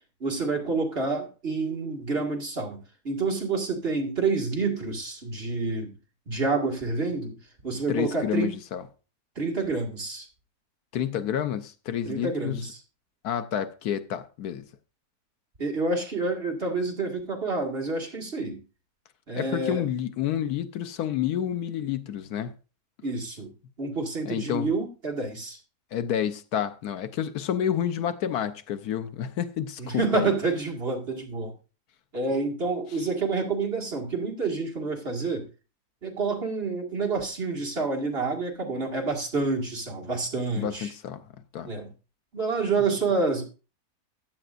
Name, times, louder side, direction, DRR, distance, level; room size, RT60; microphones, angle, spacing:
voice 1, 0.2-5.9 6.3-7.4 7.6-8.6 9.4-10.3 12.1-12.8 15.6-18.6 19.3-19.8 23.0-23.5 23.8-25.6 29.8-31.5 32.1-35.5 36.0-40.9 41.7-41.9 42.3-43.5, right 3 dB, 40° right, 2.1 m, -28 dB
voice 2, 7.9-8.8 10.9-12.6 13.2-14.7 19.4-22.5 24.2-24.7 25.9-30.3 40.5-41.2 41.5-41.7, left 9 dB, 80° left, 1.3 m, -29 dB
15.0 x 10.5 x 2.5 m
omnidirectional pair, 1.6 m